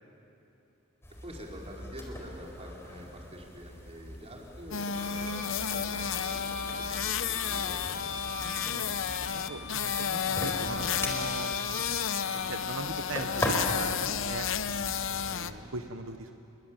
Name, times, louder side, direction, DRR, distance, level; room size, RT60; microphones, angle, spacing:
sound 1, 1.0-15.4, equal, 15° left, 4.2 m, -40 dB
voice 1, 1.2-8.0 15.5-15.7, equal, 30° right, -2 dB, 4.9 m, -47 dB
sound 2, 4.7-15.5, left 7 dB, 70° left, 0.8 m, -32 dB
Bowed string instrument, 4.9-12.4, left 3 dB, 35° left, 6.4 m, -41 dB
voice 2, 8.4-11.8 12.4-14.5 15.1-16.4, right 3 dB, 75° right, 6 dB, 1.2 m, -41 dB
29.5 x 22.5 x 8.9 m, 3.0 s
head